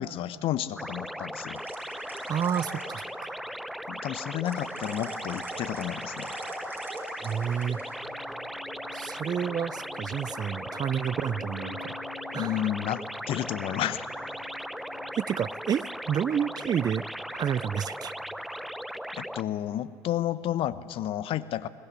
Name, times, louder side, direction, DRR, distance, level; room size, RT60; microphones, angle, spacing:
voice 1, 0.0-1.6 3.9-6.3 12.3-14.1 19.1-21.7, left 12 dB, 55° left, 15 dB, 0.9 m, -31 dB
sound 1, 0.8-19.4, equal, ahead, 0.7 m, -38 dB
sound 2, 1.5-3.1 4.5-8.0, right 2 dB, 20° right, 5.3 m, -43 dB
voice 2, 2.3-3.4 7.2-7.8 8.9-12.0 12.3-12.6 15.2-17.1 17.3-18.1, right 8 dB, 40° right, 21 dB, 0.5 m, -30 dB
sound 3, 7.6-15.1, left 10 dB, 85° left, 1.9 m, -49 dB
21.5 x 20.0 x 9.5 m, 2.4 s
hypercardioid pair, 65°, 11 cm